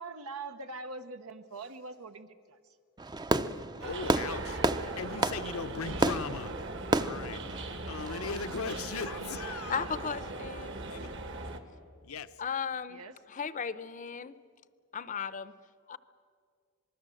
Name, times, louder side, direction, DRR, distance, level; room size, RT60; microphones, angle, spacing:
voice 1, 0.0-2.8 8.0-8.8 12.9-13.2, right 3 dB, 85° right, 8 dB, 0.9 m, -44 dB
Fireworks, 3.0-8.6, right 2 dB, 20° right, 0.5 m, -32 dB
voice 2, 3.8-6.5 7.0-9.9 10.9-11.1 12.0-12.4, left 5 dB, 75° left, 12 dB, 0.7 m, -39 dB
sound 1, 3.8-11.6, right 2 dB, 55° right, 1.6 m, -39 dB
voice 3, 9.7-10.7 12.4-13.0 13.3-14.4 14.9-15.5 15.9-16.0, left 6 dB, 35° left, 15 dB, 0.6 m, -35 dB
26.5 x 20.0 x 7.7 m, 2.2 s
head